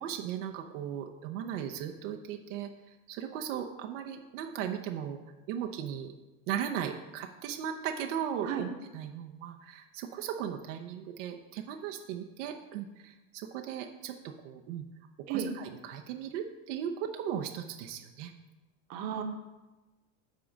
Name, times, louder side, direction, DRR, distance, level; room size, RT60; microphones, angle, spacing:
voice 1, 0.0-5.2 5.5-6.1 6.5-14.8 15.3-18.3, right 9 dB, 75° right, 3 dB, 0.9 m, -37 dB
voice 2, 18.9-19.2, right 8 dB, 40° right, 4 dB, 1.1 m, -33 dB
10.5 x 3.8 x 7.2 m, 1.1 s
supercardioid pair, 165°, 38 cm